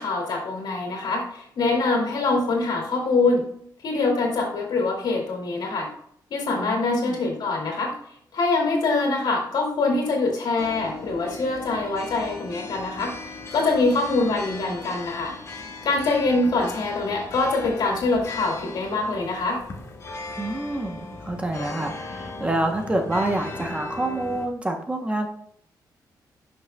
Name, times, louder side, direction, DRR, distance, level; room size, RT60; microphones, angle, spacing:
voice 1, 0.0-3.4 3.8-5.9 6.3-7.9 8.3-13.1 13.5-15.3 15.8-19.6, left 3 dB, 70° left, 0 dB, 2.4 m, -24 dB
voice 2, 6.6-7.2 20.4-25.3, right 1 dB, 15° right, 3 dB, 0.8 m, -27 dB
sound 1, 10.6-24.5, left 3 dB, 40° left, 1.1 m, -38 dB
11.0 x 6.0 x 2.2 m, 0.67 s
wide cardioid pair, 135°, 8 cm